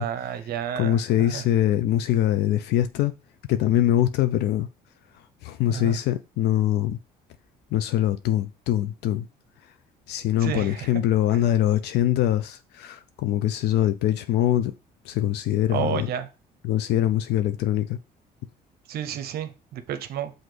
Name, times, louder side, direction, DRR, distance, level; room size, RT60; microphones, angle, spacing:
voice 1, 0.0-1.4 5.7-6.0 10.4-10.9 15.7-16.3 18.9-20.3, right 9 dB, 65° right, 0.6 m, -31 dB
voice 2, 0.8-3.1 3.5-4.7 5.4-7.0 7.7-9.3 10.1-14.7 15.1-16.1 16.6-18.0, left 12 dB, 80° left, 0.4 m, -23 dB
5.9 x 2.6 x 3.2 m
cardioid pair, 110°, 17 cm